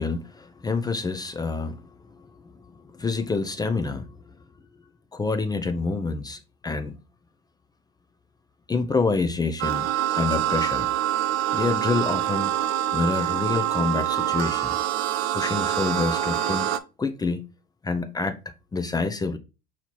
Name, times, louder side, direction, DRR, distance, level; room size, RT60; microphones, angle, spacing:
voice 1, 0.0-4.2 5.1-7.0 8.7-10.9 11.5-12.5 12.9-14.8 15.3-16.7 17.0-17.5 17.8-18.4 18.7-19.4, left 4 dB, 15° left, 0.4 m, -27 dB
sound 1, 9.6-16.8, right 12 dB, 90° right, 0.5 m, -25 dB
4.4 x 2.8 x 4.2 m
supercardioid pair, 100°, 30 cm